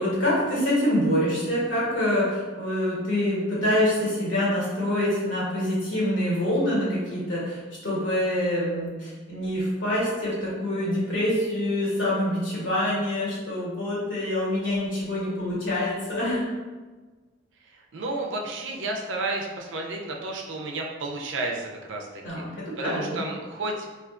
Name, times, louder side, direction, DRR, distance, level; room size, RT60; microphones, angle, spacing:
voice 1, 0.0-16.5 22.2-23.2, left 1 dB, 75° left, -7 dB, 1.4 m, -26 dB
voice 2, 17.7-22.1 22.3-22.4 22.8-23.9, right 2 dB, 70° right, 1 dB, 0.5 m, -31 dB
3.5 x 2.4 x 2.4 m, 1.3 s
head